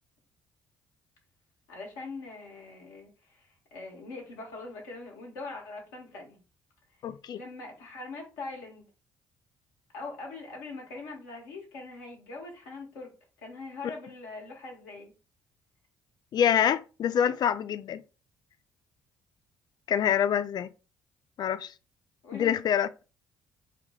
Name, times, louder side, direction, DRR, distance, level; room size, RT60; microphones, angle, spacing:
voice 1, 1.7-6.4 7.3-8.9 9.9-15.1 22.2-22.6, left 3 dB, 70° left, 1.2 m, -42 dB
voice 2, 7.0-7.4 16.3-18.0 19.9-20.7 21.4-21.7 22.3-22.9, left 9 dB, 45° left, 0.4 m, -26 dB
3.7 x 2.2 x 3.3 m
figure-of-eight pair, 45°, 10 cm